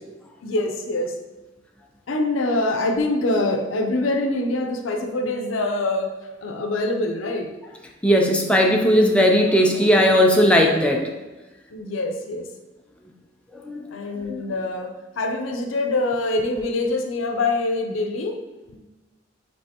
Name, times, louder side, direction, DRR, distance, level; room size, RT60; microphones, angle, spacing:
voice 1, 0.4-1.1 2.1-6.1 6.4-7.5 11.7-12.5 13.9-18.4 18.7-18.8, left 2 dB, 75° left, 4 dB, 0.6 m, -24 dB
voice 2, 8.0-11.1 13.6-13.8 14.2-14.4, equal, 5° left, 0 dB, 0.5 m, -17 dB
5.4 x 3.4 x 2.9 m, 1.1 s
head